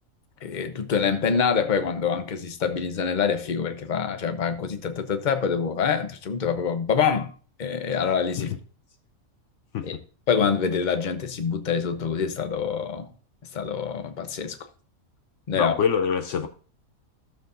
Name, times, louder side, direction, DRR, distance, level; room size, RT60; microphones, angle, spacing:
voice 1, 0.4-7.3 7.6-8.5 9.8-10.0 10.3-13.1 13.5-14.6 15.5-15.8, left 6 dB, 40° left, 0.8 m, -25 dB
voice 2, 15.5-16.5, left 7 dB, 65° left, 0.9 m, -25 dB
14.0 x 7.1 x 2.6 m
omnidirectional pair, 1.4 m